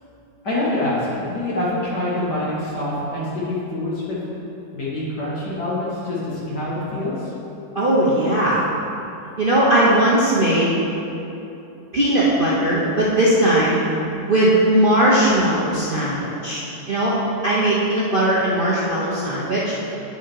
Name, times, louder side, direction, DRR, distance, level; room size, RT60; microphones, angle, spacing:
voice 1, 0.4-4.2 4.7-7.3, left 1 dB, 60° left, -7 dB, 2.6 m, -25 dB
voice 2, 7.7-8.6 9.4-10.7 11.9-13.8 14.3-16.6 16.9-17.1 17.4-19.9, right 1 dB, 40° right, -7 dB, 0.8 m, -18 dB
8.6 x 6.4 x 4.8 m, 2.8 s
omnidirectional pair, 2.1 m